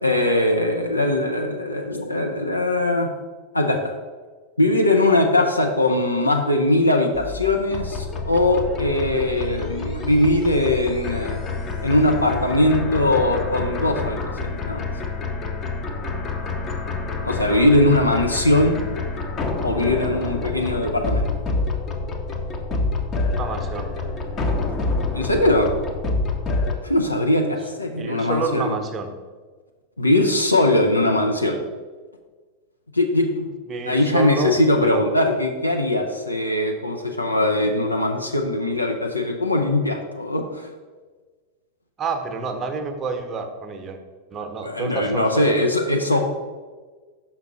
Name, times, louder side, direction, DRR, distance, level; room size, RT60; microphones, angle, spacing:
voice 1, 0.0-3.1 3.5-3.9 4.6-11.4 11.8-14.8 17.2-18.8 19.6-21.4 25.1-25.7 26.8-28.7 30.0-31.6 32.9-33.5 33.9-40.7 44.6-46.2, left 1 dB, 85° left, 2 dB, 0.6 m, -20 dB
sound 1, 7.1-26.8, left 3 dB, 25° left, 0.7 m, -27 dB
voice 2, 23.3-23.9 27.9-29.1 33.7-34.6 34.8-35.0 42.0-44.0 44.3-45.5, right 4 dB, 25° right, 5 dB, 0.8 m, -29 dB
5.9 x 5.6 x 3.7 m, 1.4 s
figure-of-eight pair, 90°, 0 cm